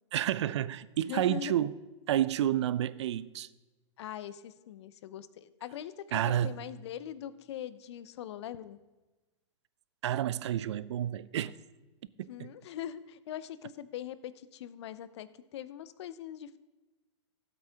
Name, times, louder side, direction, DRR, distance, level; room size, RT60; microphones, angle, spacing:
voice 1, 0.1-1.7 2.1-3.5 6.1-6.5 10.0-11.5 12.4-12.5, right 11 dB, 65° right, 0.4 m, -30 dB
voice 2, 1.1-1.5 4.0-8.8 12.3-16.6, left 11 dB, 60° left, 0.6 m, -42 dB
16.0 x 8.1 x 2.8 m
hypercardioid pair, 110°, 16 cm